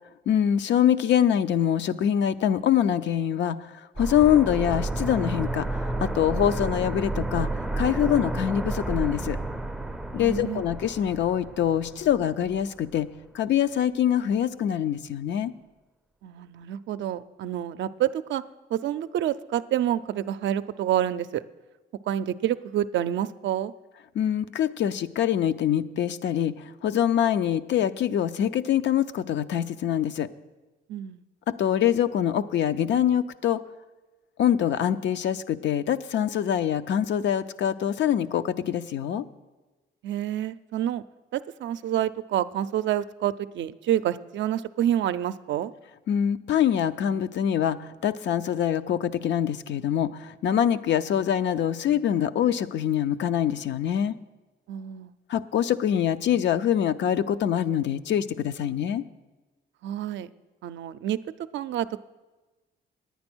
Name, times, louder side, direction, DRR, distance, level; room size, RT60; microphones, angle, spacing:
voice 1, 0.3-5.7 6.0-7.5 7.8-9.4 10.1-13.1 13.3-15.5 24.1-26.5 26.8-30.3 31.5-33.6 34.4-39.2 46.1-54.1 55.3-59.0, left 10 dB, 65° left, 12 dB, 0.5 m, -24 dB
sound 1, 4.0-12.7 13.0-13.1, right 2 dB, ahead, 0.5 m, -31 dB
voice 2, 10.2-10.6 16.2-18.4 18.7-21.4 22.1-23.7 30.9-31.2 40.0-41.0 41.3-45.7 54.7-55.1 59.8-60.3 60.6-61.2 61.5-62.0, right 11 dB, 70° right, 12 dB, 0.5 m, -28 dB
9.6 x 9.3 x 6.1 m, 1.2 s
cardioid pair, 90°, 20 cm